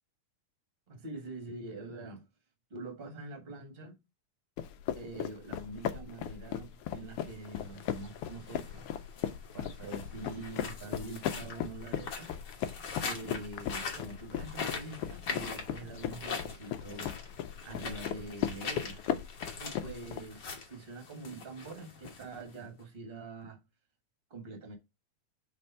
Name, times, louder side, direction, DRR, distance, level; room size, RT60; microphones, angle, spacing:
voice 1, 0.9-2.3 2.7-4.0 5.0-8.9 9.5-12.3 13.0-17.1 17.6-19.0 19.6-23.6 24.3-24.7, right 3 dB, 30° right, 1.0 m, -44 dB
sound 1, 4.6-20.2, left 10 dB, 85° left, 1.3 m, -37 dB
sound 2, 7.1-22.8, left 5 dB, 50° left, 1.4 m, -43 dB
5.3 x 3.3 x 5.5 m
omnidirectional pair, 3.3 m